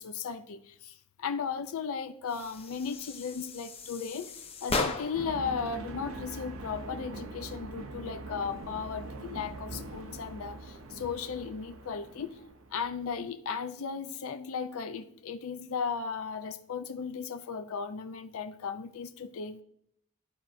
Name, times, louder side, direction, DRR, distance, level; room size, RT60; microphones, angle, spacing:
voice 1, 0.0-12.4 12.7-19.6, left 6 dB, 70° left, 9 dB, 0.4 m, -36 dB
sound 1, 2.3-5.4, left 3 dB, 30° left, 0.6 m, -36 dB
sound 2, 5.1-13.2, right 2 dB, 70° right, 0.6 m, -43 dB
12.5 x 4.3 x 2.6 m, 0.69 s
head